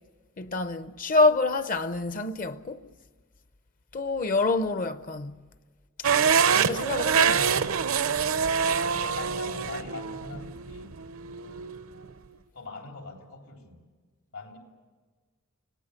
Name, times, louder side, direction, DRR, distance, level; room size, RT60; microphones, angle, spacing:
voice 1, 0.4-2.9 3.9-5.4 6.5-7.7, left 3 dB, 40° left, 0.6 m, -27 dB
sound 1, 6.0-12.1, right 6 dB, 70° right, 0.7 m, -26 dB
voice 2, 8.8-11.0 12.5-13.8 14.3-14.6, left 3 dB, 85° left, 3.7 m, -41 dB
25.0 x 18.0 x 8.3 m
head